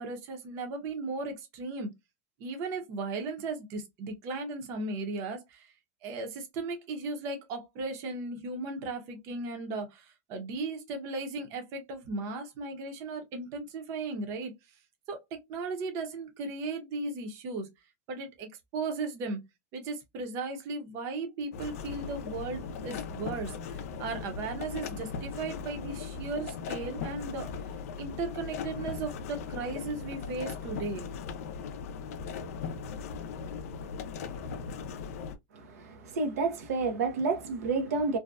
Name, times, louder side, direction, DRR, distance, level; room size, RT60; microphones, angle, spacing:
voice 1, 0.0-1.9 2.4-5.7 6.0-14.5 15.1-17.7 18.1-19.4 19.7-27.5 28.0-31.1, right 3 dB, 35° right, 0.7 m, -36 dB
sound 1, 21.5-35.4, left 5 dB, 70° left, 0.4 m, -38 dB
voice 2, 35.5-38.2, right 4 dB, 85° right, 0.6 m, -30 dB
2.6 x 2.1 x 2.2 m
supercardioid pair, 160°, 8 cm